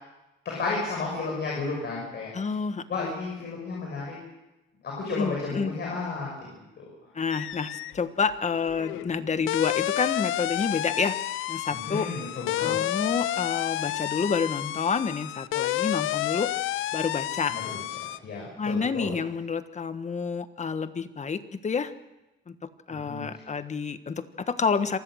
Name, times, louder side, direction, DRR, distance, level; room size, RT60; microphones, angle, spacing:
voice 1, 0.4-2.3 2.9-4.2 4.8-6.9 11.7-12.8 17.5-17.8 18.2-19.1 22.9-23.2, left 3 dB, 60° left, -2 dB, 6.7 m, -33 dB
voice 2, 2.3-3.1 5.1-5.7 7.1-11.2 11.5-12.1 12.6-16.5 16.9-17.6 18.6-21.9 22.5-25.0, left 5 dB, 35° left, 11 dB, 1.4 m, -29 dB
sound 1, 7.3-8.0 8.3-18.2, left 14 dB, 85° left, 0.7 m, -30 dB
26.5 x 16.0 x 6.5 m, 1.0 s
cardioid pair, 90°, 20 cm